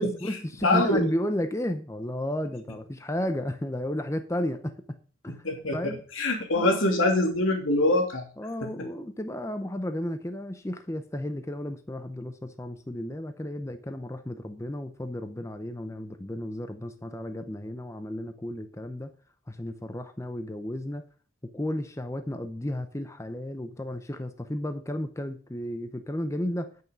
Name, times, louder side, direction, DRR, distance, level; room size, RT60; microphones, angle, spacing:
voice 1, 0.0-5.0 5.2-5.5 5.7-6.0 6.6-6.8 8.4-19.1 19.5-21.1 21.4-26.7, left 1 dB, 15° left, 8 dB, 0.7 m, -33 dB
voice 2, 0.6-1.1 5.3-8.2, left 2 dB, 85° left, 3 dB, 2.7 m, -24 dB
9.5 x 8.4 x 5.2 m, 0.41 s
head